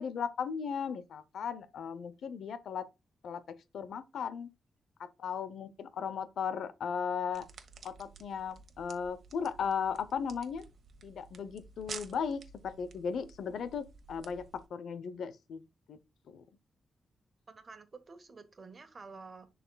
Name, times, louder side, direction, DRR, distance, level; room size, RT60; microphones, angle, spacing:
voice 1, 0.0-2.9 3.2-4.5 5.0-7.4 7.8-10.6 11.0-15.6 15.9-16.0 16.3-16.4, left 6 dB, 80° left, 0.7 m, -36 dB
sound 1, 7.3-14.7, right 5 dB, 65° right, 1.2 m, -51 dB
voice 2, 17.5-19.5, right 4 dB, 40° right, 1.4 m, -50 dB
11.0 x 4.2 x 2.3 m
cardioid pair, 105°, 0 cm